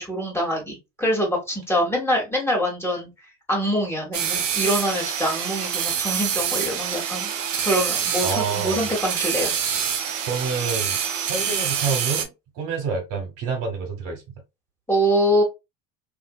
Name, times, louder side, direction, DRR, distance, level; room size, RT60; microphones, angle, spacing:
voice 1, 0.0-3.1 3.5-7.3 7.6-9.5 14.9-15.4, equal, 5° left, 1.3 m, -24 dB
sound 1, 4.1-12.3, right 8 dB, 80° right, 0.7 m, -26 dB
voice 2, 8.2-8.8 10.3-11.0 11.3-14.2, right 5 dB, 55° right, 1.3 m, -28 dB
2.6 x 2.6 x 2.3 m
hypercardioid pair, 80°, 38 cm